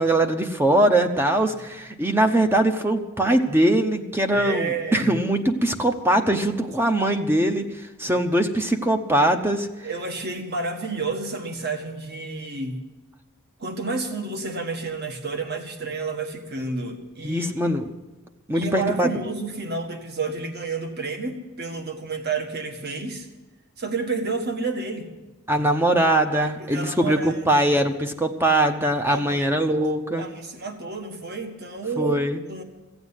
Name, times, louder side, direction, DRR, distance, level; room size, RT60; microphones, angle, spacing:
voice 1, 0.0-9.9 17.2-17.9 18.5-19.1 25.5-30.3 32.0-32.4, right 1 dB, 10° right, 5 dB, 0.8 m, -22 dB
voice 2, 4.3-5.1 9.8-12.8 13.6-17.5 18.5-23.3 23.8-25.0 26.4-27.6 29.1-29.5 30.1-32.1 32.5-32.6, right 4 dB, 50° right, 5 dB, 1.7 m, -30 dB
15.5 x 8.0 x 9.8 m, 1.1 s
head